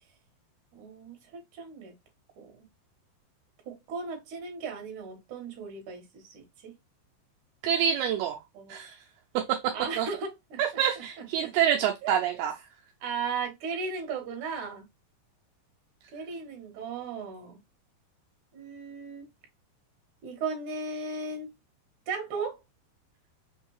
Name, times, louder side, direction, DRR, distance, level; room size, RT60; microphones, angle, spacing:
voice 1, 0.7-1.9 2.4-2.6 3.7-6.7 8.5-8.8 9.7-10.6 11.4-11.5 12.0-12.2 13.0-14.8 16.1-17.6 18.5-19.3 20.2-21.5 22.1-22.6, right 4 dB, 60° right, 2.4 m, -36 dB
voice 2, 7.6-8.4 8.7-9.0 10.0-10.1 10.6-12.5, right 9 dB, 85° right, 2.4 m, -26 dB
6.2 x 2.7 x 3.1 m
omnidirectional pair, 4.8 m